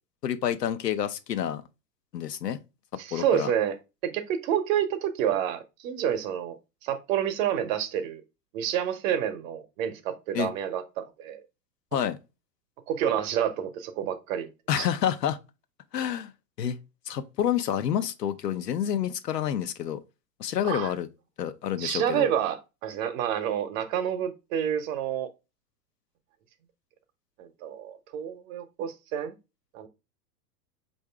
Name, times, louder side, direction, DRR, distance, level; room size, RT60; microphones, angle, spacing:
voice 1, 0.2-1.6 2.1-2.6 3.1-3.5 10.3-10.5 11.9-12.2 14.7-15.4 15.9-16.3 16.6-16.8 17.1-20.0 20.4-21.1 21.4-22.3, left 9 dB, 90° left, 0.7 m, -28 dB
voice 2, 3.0-3.8 4.0-6.6 6.8-8.2 8.5-11.4 12.9-14.5 14.8-14.9 20.6-20.9 21.8-25.3 27.4-29.4 29.7-29.9, right 9 dB, 55° right, 0.8 m, -29 dB
4.8 x 2.6 x 3.3 m
hypercardioid pair, 100°, 47 cm